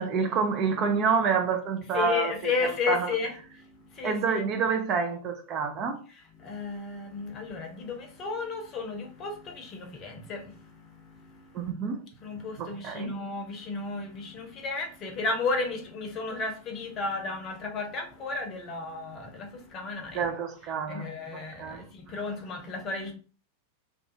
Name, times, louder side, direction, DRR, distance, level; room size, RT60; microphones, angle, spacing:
voice 1, 0.0-2.4 2.9-3.1 4.0-6.0 11.5-12.0 12.6-13.1 20.1-21.1 21.6-21.8, right 5 dB, 35° right, 0.4 m, -28 dB
voice 2, 1.9-4.4 6.1-11.7 12.2-20.3 20.8-23.1, left 4 dB, 30° left, 0.7 m, -33 dB
2.3 x 2.3 x 2.7 m
figure-of-eight pair, 90°, 0 cm